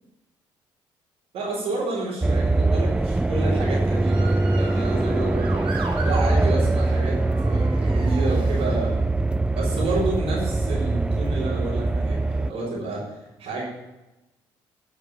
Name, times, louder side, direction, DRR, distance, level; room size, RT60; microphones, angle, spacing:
voice 1, 1.3-5.6 6.0-9.1 9.5-13.6, right 2 dB, 70° right, -9 dB, 4.4 m, -30 dB
sound 1, 2.2-12.5, right 2 dB, 10° right, 0.3 m, -22 dB
Motor vehicle (road) / Siren, 4.0-9.2 9.8-10.3, right 3 dB, 55° right, 2.7 m, -38 dB
10.0 x 6.1 x 8.8 m, 1.0 s
hypercardioid pair, 55°, 11 cm